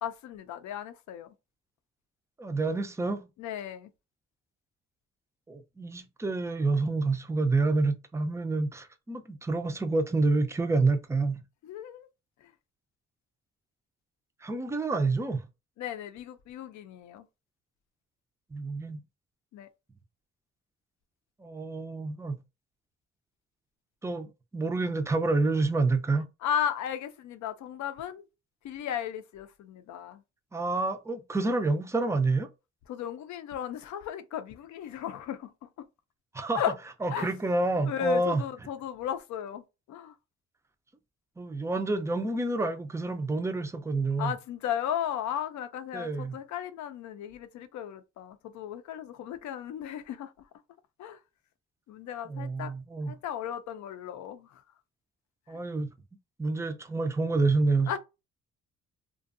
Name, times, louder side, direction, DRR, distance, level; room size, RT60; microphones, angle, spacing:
voice 1, 0.0-1.3 3.4-3.9 11.6-12.1 12.4-12.5 15.8-17.3 19.5-19.7 26.4-28.2 28.6-30.2 32.9-35.9 36.5-36.7 37.1-37.3 37.8-40.1 44.2-50.5 51.0-51.2 51.9-52.7 53.1-54.6 55.5-55.6 57.9-58.0, left 9 dB, 70° left, 0.5 m, -35 dB
voice 2, 2.4-3.3 5.5-11.4 14.4-15.5 18.5-19.0 21.4-22.4 24.0-26.3 30.5-32.5 36.3-36.6 37.0-38.4 41.4-44.3 45.9-46.4 52.3-53.1 55.5-55.9 56.4-57.9, right 3 dB, 10° right, 0.4 m, -28 dB
2.6 x 2.2 x 2.5 m
cardioid pair, 90°, 30 cm